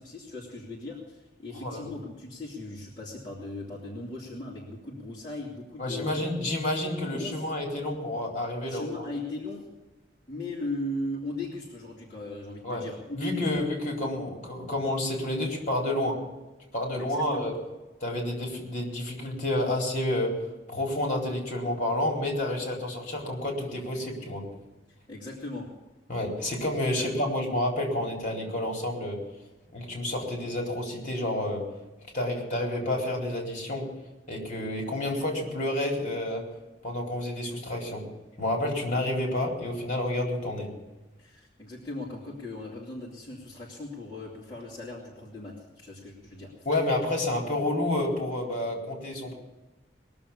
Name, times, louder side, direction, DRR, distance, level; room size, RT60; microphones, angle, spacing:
voice 1, 0.0-6.2 7.1-7.5 8.6-9.7 10.3-13.5 17.0-17.5 24.9-25.7 27.0-27.1 41.2-46.5, left 2 dB, 25° left, -7 dB, 3.2 m, -38 dB
voice 2, 5.8-9.0 12.6-12.8 13.2-16.2 16.7-17.6 18.0-20.3 20.7-24.4 26.1-29.2 29.7-31.6 32.1-33.8 34.3-36.4 36.8-38.0 38.4-40.7 46.6-49.3, left 1 dB, 45° left, 0 dB, 4.3 m, -29 dB
21.5 x 7.2 x 8.6 m, 1.1 s
head